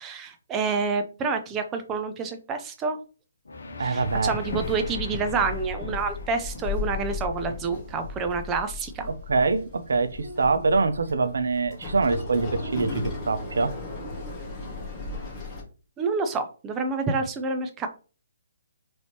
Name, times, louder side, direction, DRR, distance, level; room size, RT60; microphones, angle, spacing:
voice 1, 0.0-3.0 3.8-9.1 16.0-17.9, right 4 dB, 20° right, 0.5 m, -28 dB
sound 1, 3.4-8.5, left 3 dB, 70° left, 0.8 m, -41 dB
voice 2, 3.8-4.3 9.1-13.7, right 4 dB, 70° right, 0.5 m, -24 dB
Walk footsteps / Chatter / Hiss, 4.0-15.6, left 3 dB, 15° left, 1.8 m, -36 dB
4.1 x 3.2 x 2.9 m
figure-of-eight pair, 140°, 0 cm